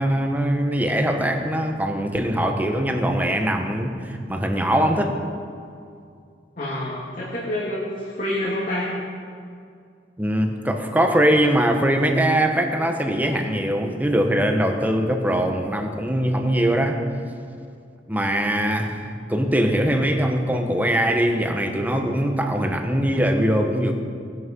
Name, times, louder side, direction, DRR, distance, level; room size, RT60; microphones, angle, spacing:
voice 1, 0.0-5.1 10.2-17.0 18.1-23.9, right 1 dB, 10° right, 4 dB, 1.2 m, -22 dB
voice 2, 6.6-8.9, left 1 dB, 45° left, -6 dB, 2.5 m, -27 dB
19.0 x 9.9 x 5.5 m, 2.3 s
head